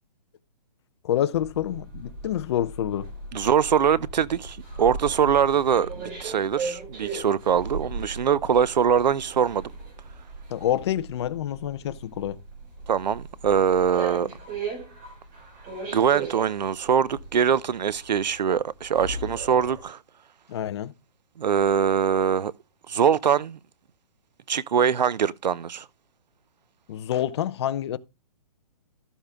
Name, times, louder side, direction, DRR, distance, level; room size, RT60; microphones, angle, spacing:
voice 1, 1.0-3.1 10.5-12.4 20.5-20.9 26.9-28.0, left 11 dB, 40° left, 0.7 m, -27 dB
sound 1, 1.3-19.8, right 3 dB, 25° right, 4.4 m, -38 dB
voice 2, 3.3-9.7 12.9-14.3 15.9-20.0 21.4-22.5 22.9-23.6 24.5-25.9, right 8 dB, 90° right, 0.7 m, -23 dB
13.0 x 7.1 x 3.6 m
hypercardioid pair, 160°, 21 cm